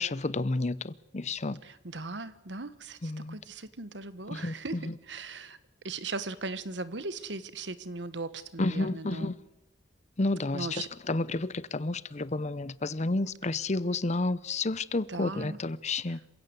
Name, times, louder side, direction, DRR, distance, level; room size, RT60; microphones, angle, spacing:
voice 1, 0.0-1.6 3.0-3.4 4.3-4.5 4.9-5.0 8.6-9.4 10.2-16.2, left 2 dB, 40° left, 0.7 m, -31 dB
voice 2, 1.6-5.6 5.8-9.3 10.5-10.9 15.1-15.6 16.1-16.2, right 3 dB, 80° right, 1.4 m, -38 dB
27.5 x 16.0 x 8.2 m
head